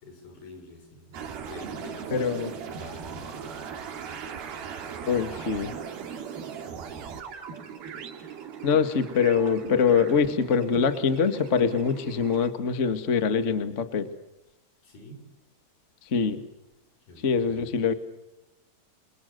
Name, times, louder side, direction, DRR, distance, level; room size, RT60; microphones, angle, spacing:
voice 1, 0.0-4.3 5.5-5.7 14.8-15.3 17.1-17.8, left 2 dB, 60° left, 6 dB, 7.5 m, -48 dB
sound 1, 1.1-12.5, right 7 dB, 65° right, 4.3 m, -39 dB
voice 2, 2.1-2.5 5.0-5.7 8.6-14.1 16.1-16.4 17.2-17.9, left 6 dB, 85° left, 9 dB, 0.6 m, -24 dB
30.0 x 26.0 x 6.7 m, 0.98 s
omnidirectional pair, 4.7 m